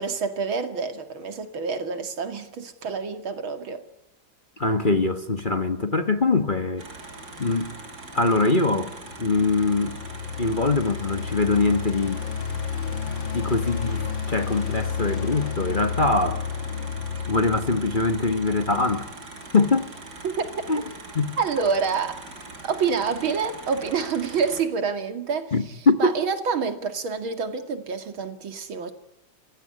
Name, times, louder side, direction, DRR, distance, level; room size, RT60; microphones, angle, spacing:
voice 1, 0.0-3.8 20.2-20.5 21.4-22.2 22.6-25.5 26.0-28.9, right 5 dB, 80° right, 3.0 m, -27 dB
voice 2, 4.6-6.9 7.4-7.8 8.1-10.0 10.4-12.2 13.0-16.5 17.3-19.1 19.5-19.9 20.7-20.8 21.1-21.3 25.5-26.1, left 3 dB, 30° left, 1.2 m, -23 dB
sound 1, 6.8-24.6, right 2 dB, 50° right, 3.7 m, -42 dB
sound 2, 8.9-19.1, left 7 dB, 70° left, 2.0 m, -31 dB
30.0 x 16.0 x 9.7 m
omnidirectional pair, 2.2 m